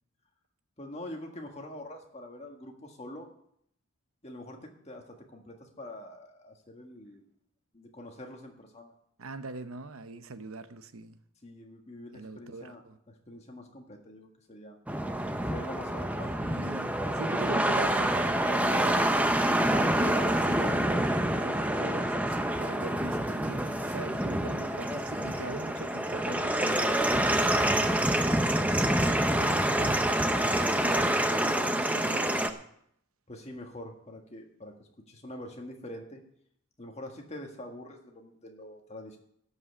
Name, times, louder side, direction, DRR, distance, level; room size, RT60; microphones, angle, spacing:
voice 1, 0.8-3.3 4.2-7.3 7.7-8.9 11.4-14.8 15.4-16.4 33.3-36.2 36.8-39.2, left 1 dB, 30° left, 1.7 m, -45 dB
voice 2, 9.2-11.2 12.1-13.0 16.4-27.6 29.3-30.0 30.4-32.6, right 3 dB, 75° right, 0.8 m, -41 dB
sound 1, 14.9-32.5, right 1 dB, 5° right, 0.6 m, -27 dB
12.5 x 5.6 x 8.3 m
head